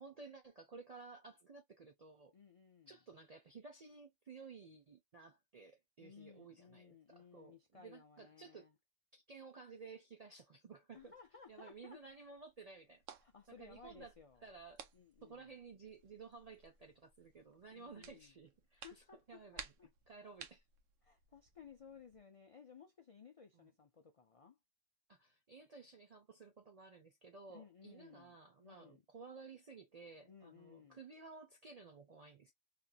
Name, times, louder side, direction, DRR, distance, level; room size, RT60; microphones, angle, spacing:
voice 1, 0.0-2.3 2.9-8.7 9.1-11.1 11.5-13.0 13.6-14.1 14.4-14.8 15.2-19.7 20.1-20.6 23.5-23.7 25.1-32.5, right 4 dB, 55° right, 0.4 m, -55 dB
voice 2, 2.3-3.0 6.0-8.7 10.9-12.0 13.2-14.5 14.9-15.5 17.7-18.3 18.7-19.9 21.0-24.6 27.5-29.0 30.2-31.0, left 6 dB, 60° left, 0.3 m, -59 dB
sound 1, 10.9-22.2, right 7 dB, 90° right, 1.0 m, -58 dB
2.9 x 2.5 x 2.2 m
omnidirectional pair, 1.3 m